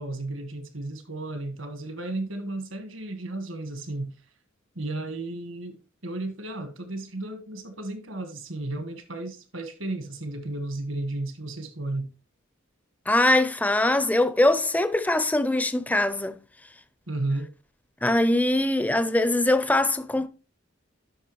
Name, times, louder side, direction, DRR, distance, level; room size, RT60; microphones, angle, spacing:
voice 1, 0.0-4.1 4.7-12.1 17.1-17.5, right 2 dB, 70° right, 1.3 m, -33 dB
voice 2, 13.1-16.4 18.0-20.3, left 1 dB, 10° left, 0.5 m, -22 dB
12.0 x 5.8 x 3.0 m
head